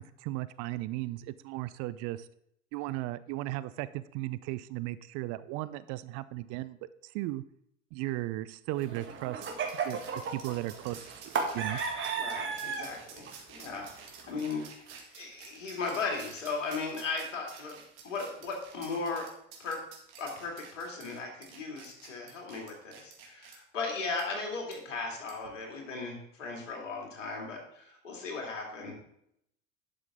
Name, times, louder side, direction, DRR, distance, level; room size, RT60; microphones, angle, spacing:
voice 1, 0.0-2.3 2.7-6.8 7.0-7.4 7.9-9.5 9.8-10.0 10.3-11.8, right 17 dB, 45° right, 15 dB, 0.5 m, -36 dB
sound 1, 8.7-13.0 13.3-13.6 13.9-14.5, right 5 dB, 30° right, 1.6 m, -35 dB
sound 2, 9.4-23.6 24.2-24.3 24.7-24.8 25.3-25.5, right 6 dB, 65° right, 2.2 m, -51 dB
voice 2, 12.2-14.9 15.1-19.3 19.6-19.9 20.2-28.9, left 4 dB, 75° left, 1 dB, 2.5 m, -37 dB
11.5 x 6.0 x 3.7 m, 0.74 s
figure-of-eight pair, 75°, 37 cm